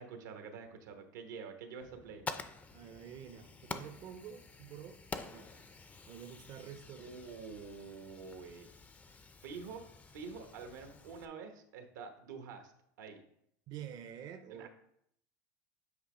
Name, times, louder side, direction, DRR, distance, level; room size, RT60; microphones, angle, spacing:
voice 1, 0.0-2.3 7.0-8.7 9.4-12.7 13.0-13.2 14.5-14.7, right 5 dB, 90° right, 6 dB, 1.0 m, -47 dB
Fire, 1.8-11.3, left 4 dB, 15° left, 0.4 m, -48 dB
voice 2, 2.7-5.7 6.1-7.2 13.7-14.7, right 9 dB, 45° right, 8 dB, 0.5 m, -48 dB
8.0 x 3.0 x 4.8 m, 0.71 s
supercardioid pair, 120°, 9 cm